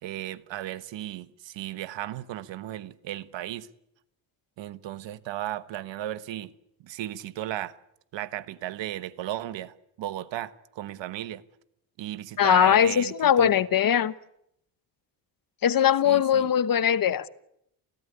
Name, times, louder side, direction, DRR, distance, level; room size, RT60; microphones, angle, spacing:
voice 1, 0.0-3.7 4.6-6.5 6.8-7.8 8.1-11.4 12.0-13.6 16.0-16.5, right 13 dB, 80° right, 1.3 m, -35 dB
voice 2, 12.4-14.1 15.6-17.3, left 9 dB, 50° left, 1.1 m, -21 dB
28.5 x 17.0 x 9.7 m
cardioid pair, 95°, 43 cm